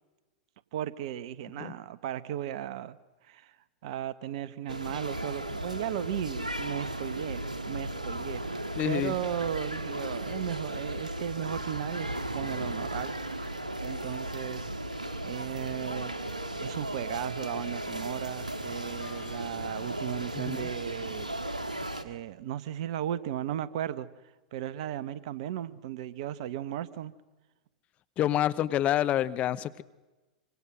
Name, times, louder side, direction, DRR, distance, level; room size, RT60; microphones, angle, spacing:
voice 1, 0.7-3.0 3.2-3.5 3.8-8.4 8.8-13.1 13.8-14.7 15.2-16.1 16.6-21.3 22.0-24.1 24.5-27.1, right 11 dB, 55° right, 1.3 m, -36 dB
sound 1, 4.7-22.0, right 1 dB, 85° right, 1.8 m, -36 dB
voice 2, 8.8-9.2 20.4-20.7 28.2-29.8, left 12 dB, 35° left, 1.0 m, -27 dB
sound 2, 19.0-20.0, left 11 dB, 55° left, 6.6 m, -53 dB
26.0 x 25.5 x 6.3 m
figure-of-eight pair, 95°, 4 cm